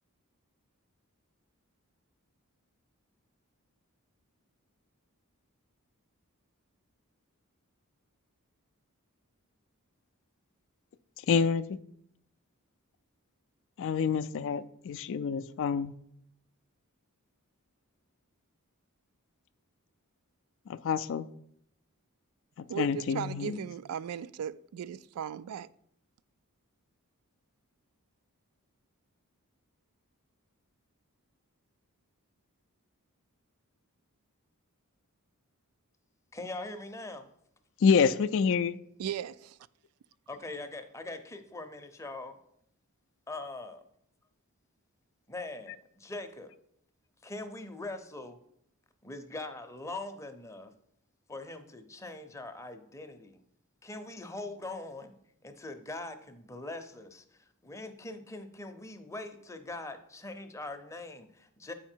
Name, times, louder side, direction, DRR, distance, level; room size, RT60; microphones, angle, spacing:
voice 1, 11.3-11.8 13.8-15.9 20.7-21.3 22.6-23.6 37.8-38.8, left 6 dB, 60° left, 0.3 m, -27 dB
voice 2, 22.7-25.7 39.0-39.6, right 8 dB, 80° right, 0.3 m, -37 dB
voice 3, 36.3-37.3 40.3-42.4 43.3-43.8 45.3-46.5 47.2-48.4 49.0-50.7 51.3-53.4 53.8-55.1 55.4-61.7, left 2 dB, 15° left, 0.6 m, -42 dB
8.2 x 4.9 x 4.4 m
head